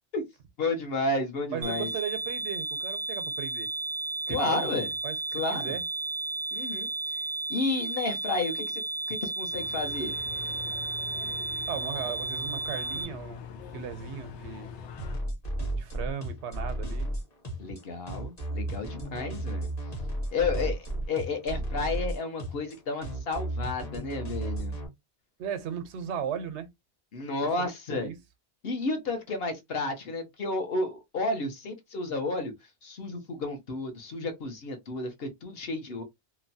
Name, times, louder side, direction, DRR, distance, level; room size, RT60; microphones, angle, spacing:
voice 1, 0.6-1.9 4.3-4.9 5.3-5.8 6.5-6.9 7.5-8.8 9.1-10.1 17.6-19.7 20.3-24.7 27.1-28.1 28.6-32.5 32.8-36.0, left 3 dB, 60° left, 1.0 m, -32 dB
voice 2, 1.5-3.7 4.3-4.7 5.0-5.1 5.5-5.8 11.7-13.4 13.7-14.7 15.7-17.1 20.4-20.7 25.4-26.7 27.6-28.2, right 8 dB, 90° right, 0.9 m, -36 dB
sound 1, 1.6-13.0, right 2 dB, 50° right, 0.5 m, -33 dB
sound 2, 9.5-15.2, left 6 dB, 90° left, 0.9 m, -43 dB
sound 3, 15.0-24.9, right 1 dB, 40° left, 1.1 m, -33 dB
2.9 x 2.2 x 2.6 m
omnidirectional pair, 1.1 m